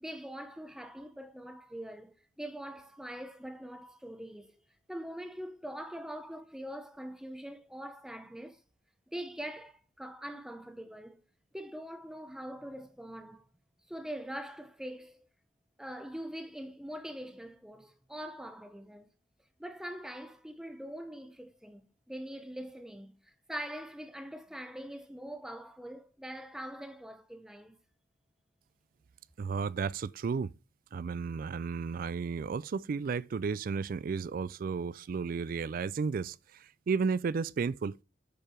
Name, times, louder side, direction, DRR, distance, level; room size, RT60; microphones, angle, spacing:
voice 1, 0.0-4.6 4.9-8.6 9.1-11.2 11.5-13.5 13.9-15.2 15.8-19.1 19.6-21.8 22.1-27.8, equal, 5° right, 0.7 m, -43 dB
voice 2, 29.4-30.5 30.9-38.0, right 5 dB, 45° right, 0.3 m, -33 dB
7.6 x 4.7 x 5.0 m
head